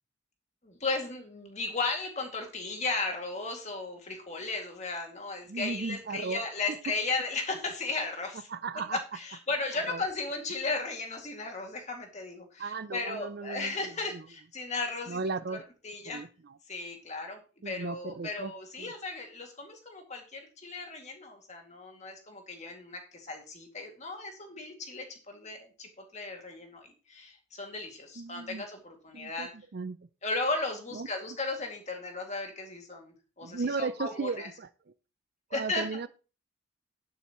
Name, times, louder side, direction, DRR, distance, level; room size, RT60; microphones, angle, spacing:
voice 1, 0.6-8.5 8.9-15.2 15.8-16.2 16.7-17.4 17.6-29.5 30.2-34.5 35.5-36.0, left 3 dB, 35° left, 3 dB, 2.3 m, -35 dB
voice 2, 5.5-6.4 6.9-7.0 8.5-9.0 9.9-10.0 12.6-13.8 14.1-14.2 15.1-15.6 16.1-16.6 17.6-18.5 18.8-18.9 28.2-28.6 29.1-30.0 30.9-31.1 33.4-34.7 35.5-36.1, right 4 dB, 50° right, 14 dB, 0.5 m, -35 dB
11.0 x 10.0 x 3.0 m, 0.36 s
head